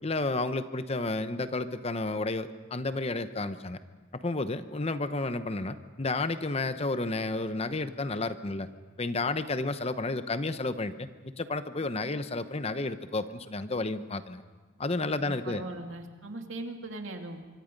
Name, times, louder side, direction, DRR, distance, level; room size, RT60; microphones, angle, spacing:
voice 1, 0.0-3.8 4.2-8.7 9.0-11.1 11.4-14.4 14.8-15.6, left 2 dB, 30° left, 11 dB, 0.9 m, -31 dB
voice 2, 15.2-17.4, right 2 dB, 80° right, 4 dB, 2.4 m, -39 dB
25.0 x 24.5 x 5.3 m, 1.3 s
head